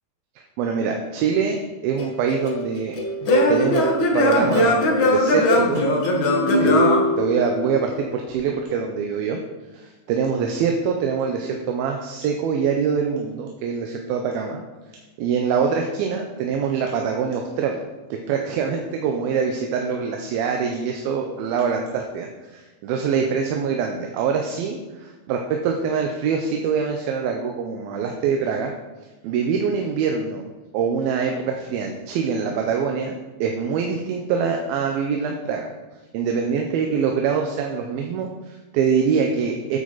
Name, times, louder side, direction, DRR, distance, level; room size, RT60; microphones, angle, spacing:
voice 1, 0.6-3.0 3.5-3.9 4.1-5.9 6.6-6.8 7.2-9.4 9.7-14.6 15.2-17.8 18.3-28.7 29.2-30.5 30.7-33.2 33.4-35.7 36.1-39.8, right 6 dB, 80° right, 2 dB, 2.6 m, -24 dB
Singing / Plucked string instrument, 2.0-7.9, left 1 dB, 60° left, 1.3 m, -20 dB
9.6 x 8.9 x 4.1 m, 1.2 s
omnidirectional pair, 4.5 m